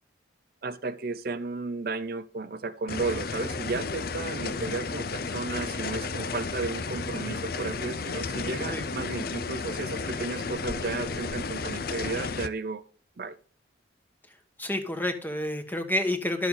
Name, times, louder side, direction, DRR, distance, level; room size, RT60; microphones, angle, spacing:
voice 1, 0.6-12.8 13.2-13.4, right 3 dB, 50° right, 0.5 m, -33 dB
sound 1, 2.9-12.5, left 4 dB, 50° left, 0.6 m, -33 dB
voice 2, 14.6-16.5, left 1 dB, 10° left, 1.2 m, -29 dB
12.0 x 6.9 x 3.9 m
head